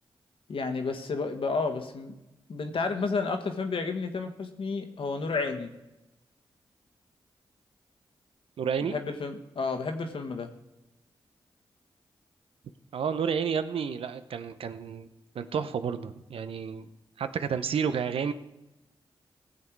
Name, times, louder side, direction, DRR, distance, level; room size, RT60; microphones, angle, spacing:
voice 1, 0.5-2.1 2.5-5.7 8.8-10.5, left 4 dB, 70° left, 6 dB, 1.5 m, -31 dB
voice 2, 8.6-9.0 12.9-15.1 15.3-16.9 17.2-18.3, right 7 dB, 80° right, 11 dB, 0.8 m, -30 dB
16.5 x 7.5 x 4.7 m, 0.98 s
cardioid pair, 55°, 9 cm